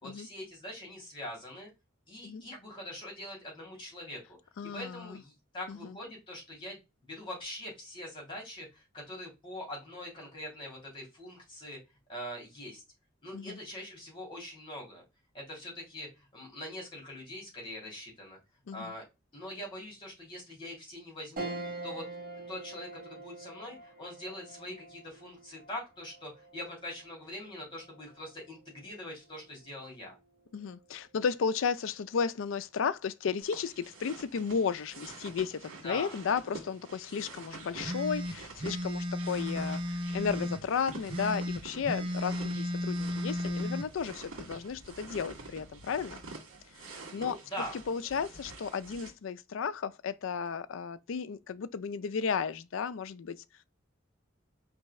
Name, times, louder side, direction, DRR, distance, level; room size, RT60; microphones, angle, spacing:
voice 1, 0.0-1.7 2.1-4.4 4.6-6.8 7.1-11.8 12.1-12.8 13.2-15.0 15.3-18.4 18.7-19.0 19.3-21.5 21.8-22.1 22.5-30.2 35.8-36.2 47.1-47.8, left 1 dB, 25° left, 2.6 m, -43 dB
voice 2, 4.6-5.2 5.7-6.0 13.3-13.6 18.7-18.9 30.5-46.2 46.8-47.4 47.7-53.4, left 6 dB, 70° left, 0.4 m, -34 dB
sound 1, 21.4-31.0 31.4-31.5 32.9-33.3, right 2 dB, 45° right, 1.7 m, -46 dB
sound 2, 33.4-49.1, right 3 dB, 90° right, 1.9 m, -48 dB
sound 3, 37.8-40.6 41.1-43.9, left 1 dB, 25° right, 0.6 m, -34 dB
4.6 x 3.3 x 3.1 m
head